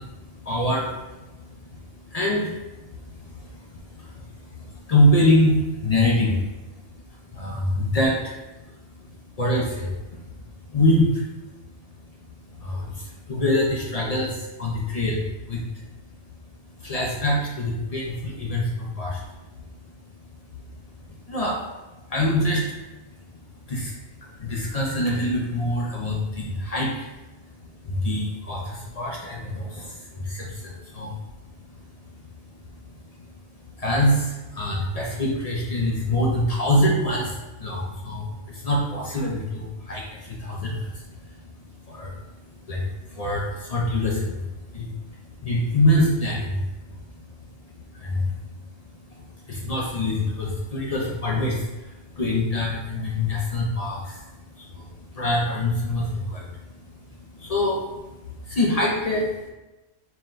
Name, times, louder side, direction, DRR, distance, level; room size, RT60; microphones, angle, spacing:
voice 1, 0.0-59.5, left 1 dB, 50° left, -3 dB, 0.4 m, -26 dB
4.6 x 2.2 x 3.8 m, 1.1 s
omnidirectional pair, 1.3 m